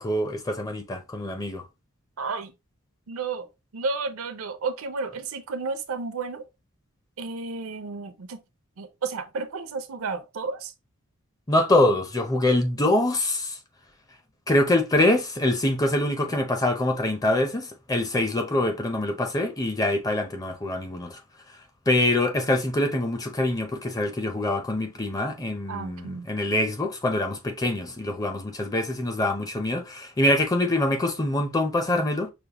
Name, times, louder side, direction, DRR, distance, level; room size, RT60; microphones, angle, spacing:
voice 1, 0.0-1.6 11.5-13.6 14.5-21.2 21.9-32.3, left 1 dB, 15° left, 0.5 m, -24 dB
voice 2, 2.2-2.5 3.1-3.5 3.7-6.5 7.2-8.4 8.8-10.7 25.7-26.3, right 4 dB, 75° right, 0.6 m, -32 dB
5.1 x 2.1 x 2.8 m
head